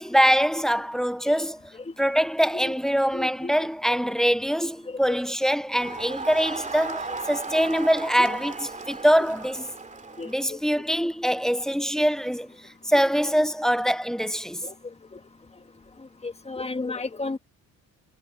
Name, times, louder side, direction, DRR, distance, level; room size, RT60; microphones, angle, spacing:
voice 1, 0.0-1.7 2.0-9.7 10.2-12.5 12.8-14.6, equal, ahead, 0.4 m, -23 dB
voice 2, 3.1-3.7 4.9-5.2 6.0-6.1 7.1-7.2 7.5-7.6 8.2-8.4 9.2-9.3 10.2-10.6 14.6-14.7 15.1-15.2 16.2-17.4, left 3 dB, 20° left, 1.8 m, -34 dB
Crowd, 5.7-10.5, right 4 dB, 25° right, 2.6 m, -36 dB
cardioid pair, 90°, 30 cm